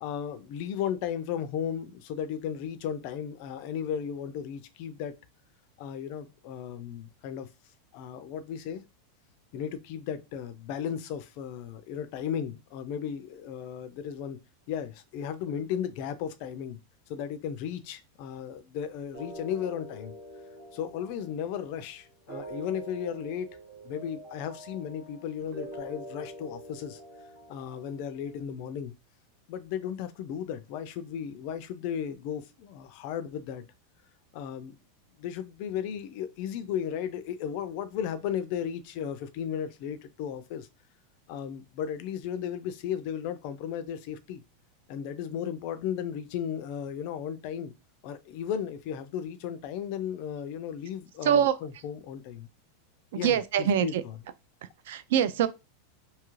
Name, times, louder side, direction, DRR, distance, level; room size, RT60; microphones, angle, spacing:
voice 1, 0.0-5.1 5.8-7.5 7.9-8.8 9.5-14.4 14.7-16.8 17.1-20.1 20.7-23.6 23.8-27.0 27.5-28.9 29.5-33.6 34.3-34.7 35.2-40.7 41.3-44.4 44.9-47.7 48.0-52.5 53.2-53.9, left 8 dB, 40° left, 0.3 m, -35 dB
sound 1, 19.1-28.3, right 1 dB, 45° right, 1.0 m, -45 dB
voice 2, 51.2-51.6 53.1-54.0 54.9-55.5, right 9 dB, 65° right, 0.3 m, -24 dB
2.7 x 2.4 x 3.0 m
supercardioid pair, 180°, 0 cm